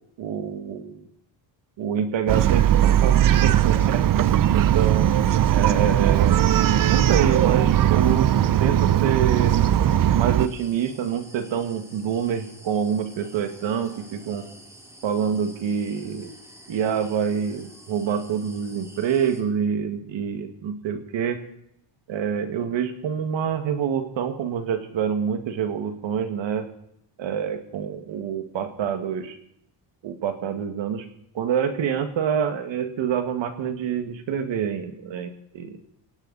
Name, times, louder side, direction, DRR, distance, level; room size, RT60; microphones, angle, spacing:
voice 1, 0.2-1.0 1.8-5.1 5.5-6.4 6.9-8.3 8.6-9.6 10.1-14.5 15.0-16.3 16.7-21.4 22.1-26.7 27.2-29.4 30.0-31.1 31.3-35.8, right 8 dB, 75° right, 8 dB, 2.0 m, -26 dB
Bark, 2.3-10.5, right 11 dB, 45° right, 0.7 m, -19 dB
sound 1, 10.4-19.4, right 1 dB, 5° right, 2.6 m, -48 dB
17.5 x 16.5 x 4.1 m, 0.73 s
cardioid pair, 135°, 45 cm